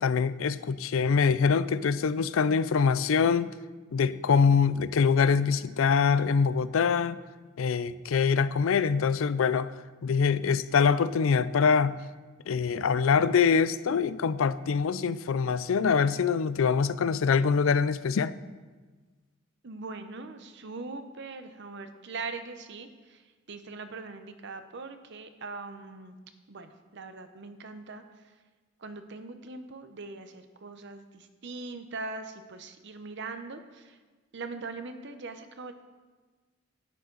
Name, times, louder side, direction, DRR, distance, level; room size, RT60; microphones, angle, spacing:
voice 1, 0.0-3.5 3.9-7.2 7.6-9.7 10.0-12.0 12.5-18.3, left 6 dB, 80° left, 15 dB, 0.4 m, -24 dB
voice 2, 19.6-26.2 26.5-28.3 28.8-34.0 34.3-35.7, right 3 dB, 60° right, 9 dB, 0.8 m, -41 dB
11.5 x 9.4 x 3.9 m, 1.3 s
head